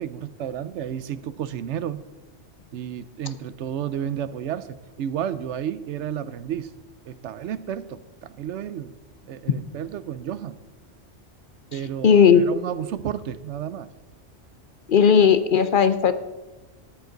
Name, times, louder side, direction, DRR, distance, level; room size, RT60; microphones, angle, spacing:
voice 1, 0.0-2.0 2.7-6.7 7.1-8.9 9.3-10.6 11.7-13.9, right 9 dB, 85° right, 15 dB, 1.0 m, -32 dB
voice 2, 12.0-12.5 14.9-16.1, left 7 dB, 55° left, 12 dB, 0.8 m, -16 dB
13.5 x 10.5 x 3.9 m, 1.1 s
omnidirectional pair, 1.2 m